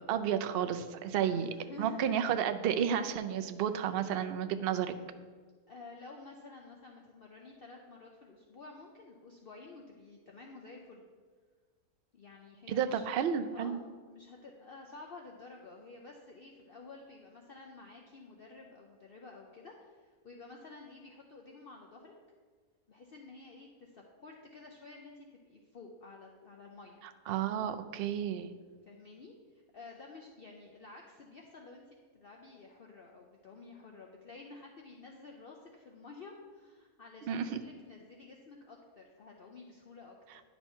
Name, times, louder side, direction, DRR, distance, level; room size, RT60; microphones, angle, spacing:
voice 1, 0.0-1.5 1.8-5.0 12.7-13.8 27.3-28.5 37.3-37.6, right 8 dB, 65° right, 9 dB, 0.6 m, -31 dB
voice 2, 1.2-2.3 5.7-11.0 12.1-13.0 13.5-22.1 22.9-27.0 28.9-40.4, left 3 dB, 50° left, 1 dB, 0.8 m, -51 dB
10.0 x 5.6 x 4.4 m, 1.5 s
omnidirectional pair, 1.5 m